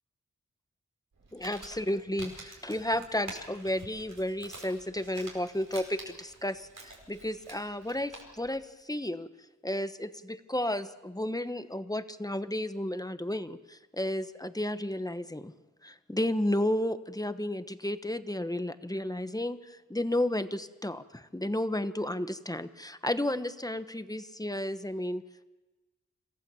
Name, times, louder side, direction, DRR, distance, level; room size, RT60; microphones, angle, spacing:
Crumpling crinkling, 1.1-8.5, right 2 dB, 90° right, 5.1 m, -49 dB
voice 1, 1.3-9.3 9.6-15.5 15.8-25.2, left 1 dB, 10° left, 11 dB, 1.1 m, -32 dB
27.0 x 15.0 x 7.1 m, 1.1 s
cardioid pair, 45°, 31 cm